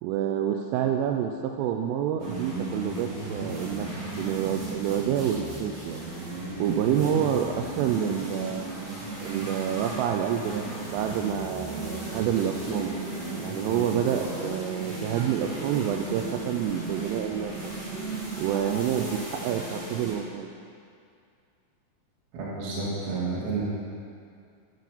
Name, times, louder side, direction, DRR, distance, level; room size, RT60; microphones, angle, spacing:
voice 1, 0.0-6.0 6.6-8.7 9.2-10.7 10.9-12.9 13.4-17.7 18.4-20.5, right 9 dB, 90° right, 4 dB, 3.1 m, -28 dB
sound 1, 2.2-20.1, right 2 dB, 40° right, 3.2 m, -35 dB
voice 2, 22.3-23.6, right 3 dB, 60° right, -7 dB, 3.3 m, -30 dB
13.5 x 6.7 x 5.0 m, 2.3 s
omnidirectional pair, 5.6 m